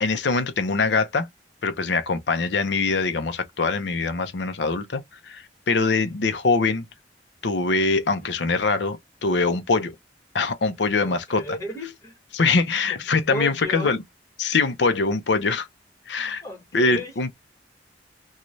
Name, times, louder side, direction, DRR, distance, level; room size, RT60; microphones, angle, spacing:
voice 1, 0.0-1.3 1.6-6.9 7.4-9.9 10.3-11.4 12.3-14.0 14.4-15.7 16.1-16.4 16.7-17.3, left 4 dB, 85° left, 0.6 m, -23 dB
voice 2, 11.0-12.2 13.3-13.9 16.4-17.1, equal, 20° left, 1.2 m, -34 dB
3.0 x 2.3 x 2.6 m
head